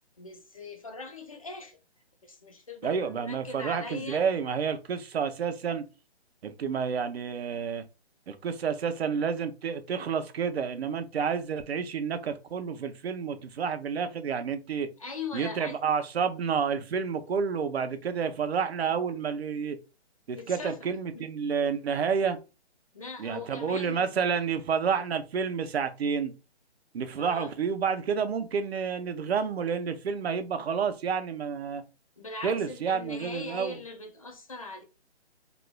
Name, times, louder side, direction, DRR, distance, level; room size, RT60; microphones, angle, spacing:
voice 1, 0.2-1.8 2.3-4.2 15.0-15.8 20.4-21.3 22.9-24.1 27.2-27.5 32.2-34.8, left 3 dB, 35° left, 0.4 m, -40 dB
voice 2, 2.8-5.8 6.4-7.8 8.3-14.9 15.3-19.8 20.3-22.4 23.2-26.3 26.9-31.8 32.4-33.8, right 6 dB, 65° right, 0.6 m, -29 dB
3.1 x 2.4 x 2.2 m
hypercardioid pair, 165°, 33 cm